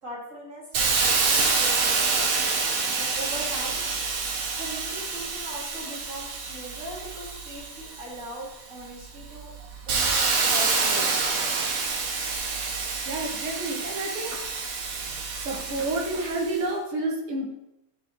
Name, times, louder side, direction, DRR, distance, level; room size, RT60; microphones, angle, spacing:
voice 1, 0.0-2.2 2.8-4.1 4.6-9.5 9.8-11.1, right 1 dB, 35° right, -7 dB, 2.9 m, -40 dB
Hiss, 0.7-8.3 8.8-16.6, right 4 dB, 55° right, 1.1 m, -27 dB
voice 2, 13.1-14.4 15.4-17.5, right 2 dB, 80° right, -1 dB, 2.1 m, -30 dB
10.5 x 4.4 x 3.1 m, 0.88 s
omnidirectional pair, 2.3 m